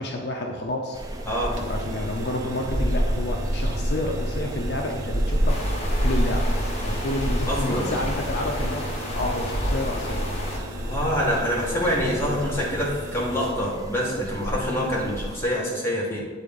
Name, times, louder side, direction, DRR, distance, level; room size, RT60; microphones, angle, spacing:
voice 1, 0.0-1.3 1.6-5.6 6.0-6.5 6.8-10.2, left 1 dB, 55° left, 1 dB, 0.5 m, -30 dB
sound 1, 0.9-15.4, equal, 20° right, 0.4 m, -29 dB
sound 2, 1.5-13.5, right 1 dB, 85° right, 0.8 m, -37 dB
sound 3, 5.5-10.6, left 1 dB, 35° left, 0.9 m, -34 dB
voice 2, 7.5-7.9 10.8-16.2, equal, 15° left, -6 dB, 1.5 m, -26 dB
8.8 x 3.8 x 3.6 m, 1.5 s
head